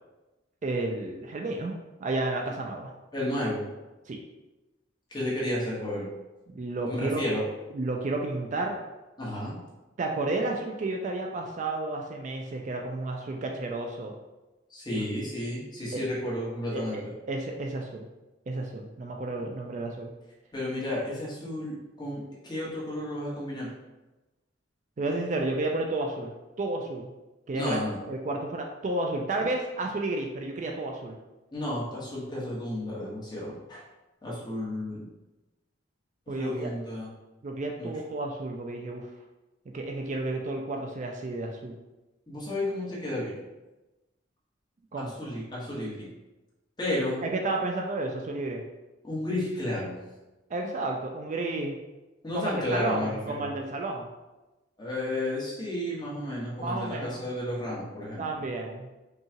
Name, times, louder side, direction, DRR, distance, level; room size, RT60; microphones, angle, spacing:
voice 1, 0.6-2.9 4.1-4.2 6.5-7.2 7.7-8.8 10.0-14.1 14.9-15.0 15.9-16.0 16.7-17.0 17.3-18.1 18.5-20.1 25.0-27.1 27.5-27.8 28.1-31.2 36.3-36.7 37.4-39.1 39.7-41.7 44.9-45.1 47.2-48.6 50.5-51.8 52.3-54.1 56.6-57.2 58.2-58.9, right 2 dB, 40° right, 2 dB, 0.4 m, -31 dB
voice 2, 3.1-3.6 5.1-6.1 6.8-7.4 9.2-9.6 14.7-17.1 19.4-19.6 20.5-23.7 27.5-28.0 31.5-33.8 34.2-35.0 36.3-37.1 37.8-37.9 42.3-43.4 45.0-46.1 46.8-47.2 49.0-50.0 52.2-53.5 54.8-58.4, left 1 dB, 25° left, -7 dB, 1.3 m, -32 dB
5.4 x 2.4 x 2.9 m, 1.1 s
head